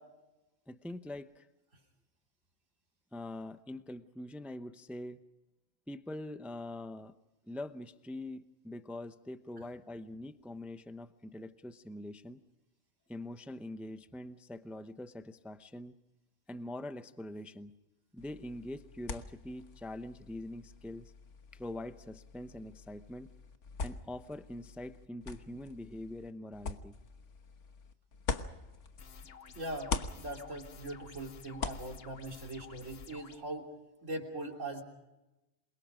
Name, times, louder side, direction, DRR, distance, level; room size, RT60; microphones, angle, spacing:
voice 1, 0.7-1.5 3.1-5.2 5.9-7.1 7.5-12.4 13.1-15.9 16.5-17.7 18.1-21.1 21.5-23.3 23.8-26.9, left 1 dB, ahead, 10 dB, 0.6 m, -44 dB
sound 1, 18.2-29.4 29.7-33.1, left 4 dB, 75° left, 1.6 m, -43 dB
sound 2, 29.0-33.4, left 6 dB, 55° left, 1.2 m, -53 dB
voice 2, 29.6-33.7 34.0-34.8, right 1 dB, 85° right, 1 dB, 3.6 m, -41 dB
27.5 x 23.0 x 5.1 m, 1.0 s
omnidirectional pair, 1.3 m